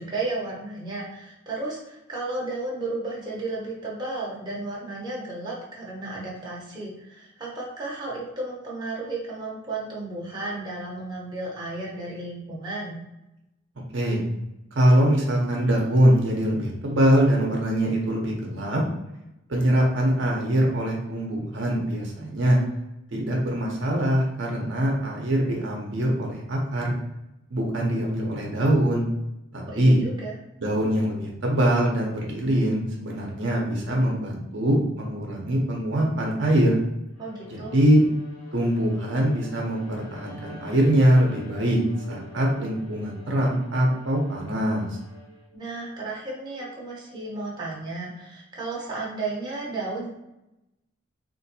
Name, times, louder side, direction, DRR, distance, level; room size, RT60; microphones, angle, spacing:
voice 1, 0.0-13.0 29.6-30.3 37.2-37.8 45.5-50.1, right 2 dB, 20° right, -5 dB, 0.8 m, -33 dB
voice 2, 14.7-18.8 19.5-22.6 23.1-27.0 27.5-29.1 29.5-30.0 30.6-36.8 37.5-38.0 38.5-41.8 42.1-44.9, right 1 dB, 60° right, -1 dB, 0.7 m, -23 dB
Bowed string instrument, 37.2-45.6, left 2 dB, 90° left, 1.2 m, -46 dB
3.8 x 2.5 x 2.7 m, 0.92 s
head